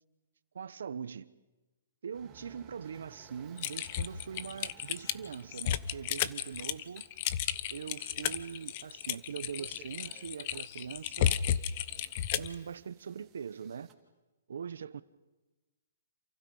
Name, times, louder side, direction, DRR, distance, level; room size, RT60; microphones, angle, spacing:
voice 1, 0.5-1.3 2.0-7.1 7.7-11.4 12.4-13.9 14.5-15.0, right 7 dB, 75° right, 1.0 m, -42 dB
sound 1, 2.1-13.9, right 6 dB, 20° right, 2.5 m, -59 dB
Typing, 3.6-12.5, left 10 dB, 40° left, 0.9 m, -33 dB
28.5 x 28.5 x 5.6 m
hypercardioid pair, 155°, 0 cm